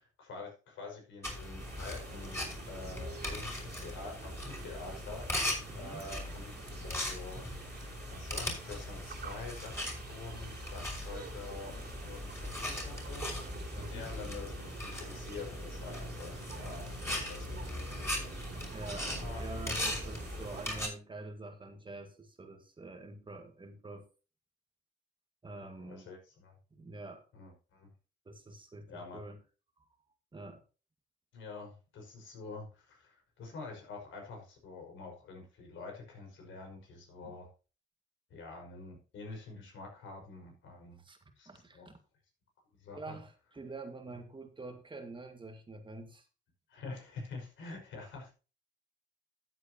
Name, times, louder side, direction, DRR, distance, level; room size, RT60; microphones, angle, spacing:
voice 1, 0.0-5.5 5.8-7.4 8.1-11.7 12.0-13.2 13.7-18.4 19.2-19.5 25.6-26.5 27.3-27.9 28.9-29.3 31.3-37.5 38.3-41.0 41.4-41.9 42.8-43.2 46.7-48.3, left 3 dB, 75° left, 2 dB, 5.3 m, -47 dB
sound 1, 1.2-20.9, left 1 dB, 15° left, 4.9 m, -39 dB
sound 2, 1.6-20.8, right 5 dB, 55° right, 2.9 m, -48 dB
voice 2, 5.7-6.0 13.7-14.1 18.7-24.0 25.4-26.1 26.7-27.2 28.3-29.4 30.3-30.6 37.2-37.4 41.0-41.2 41.5-42.0 42.9-46.2, right 2 dB, 25° right, 6 dB, 1.8 m, -46 dB
13.5 x 8.1 x 2.9 m, 0.32 s
cardioid pair, 90°, 20 cm